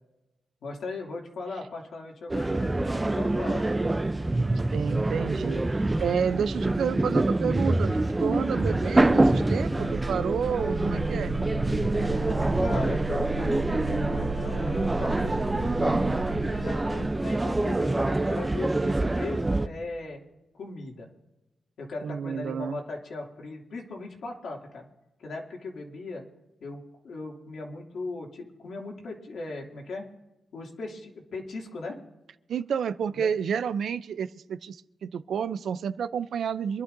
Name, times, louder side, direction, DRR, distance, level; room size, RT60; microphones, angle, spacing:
voice 1, 0.6-3.7 12.6-20.2 20.5-21.1 21.8-24.9 25.2-26.2 26.6-30.1 30.5-32.0 33.1-33.3, left 3 dB, 75° left, 0 dB, 2.6 m, -38 dB
sound 1, 2.3-19.7, right 2 dB, 15° right, 0.6 m, -26 dB
voice 2, 4.5-11.4 22.0-22.8 32.5-36.8, right 7 dB, 85° right, 13 dB, 0.5 m, -30 dB
sound 2, 9.0-17.2, right 4 dB, 15° left, 1.4 m, -35 dB
26.0 x 11.5 x 2.7 m, 0.97 s
wide cardioid pair, 120°, 0 cm